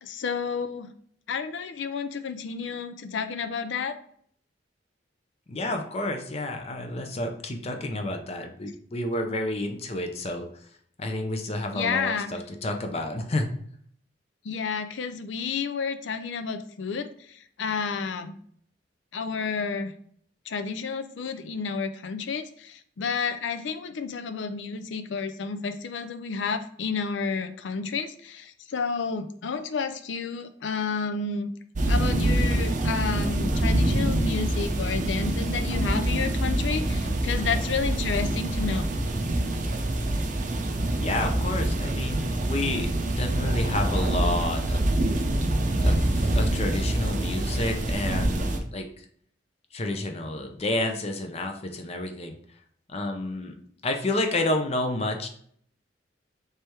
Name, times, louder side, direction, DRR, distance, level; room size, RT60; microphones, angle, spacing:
voice 1, 0.0-0.9 1.3-3.9 11.7-12.3 14.5-17.1 17.6-18.3 19.1-19.9 20.5-31.5 31.9-38.9, left 5 dB, 85° left, 9 dB, 0.5 m, -30 dB
voice 2, 5.5-10.4 11.0-13.5 41.0-44.8 45.8-48.8 49.7-52.4 52.9-53.6 53.8-55.3, left 1 dB, 35° left, 5 dB, 0.5 m, -30 dB
sound 1, 31.7-48.6, right 1 dB, 45° right, 0.6 m, -25 dB
3.3 x 3.3 x 4.4 m, 0.62 s
head